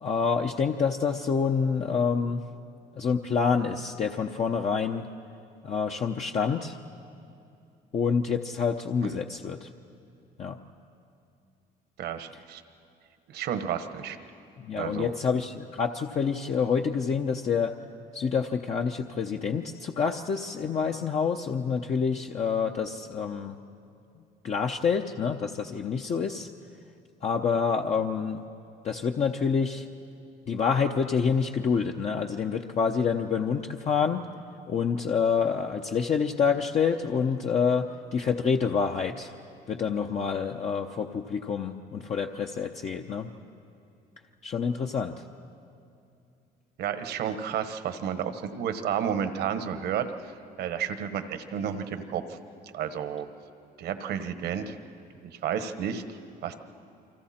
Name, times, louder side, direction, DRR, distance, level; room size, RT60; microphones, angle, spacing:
voice 1, 0.0-2.4 3.0-5.1 5.6-6.8 7.9-9.7 10.4-10.6 14.6-17.7 18.1-23.5 24.4-26.5 27.2-28.4 28.8-29.9 30.5-34.3 34.7-39.3 39.7-43.3 44.4-45.2, left 6 dB, 40° left, 2 dB, 0.8 m, -27 dB
voice 2, 12.0-12.6 13.3-14.2 14.8-15.1 46.8-50.3 50.6-52.4 52.7-53.3 53.8-54.8 55.2-56.5, right 8 dB, 75° right, 9 dB, 1.3 m, -31 dB
29.0 x 24.5 x 4.4 m, 2.6 s
cardioid pair, 110°, 17 cm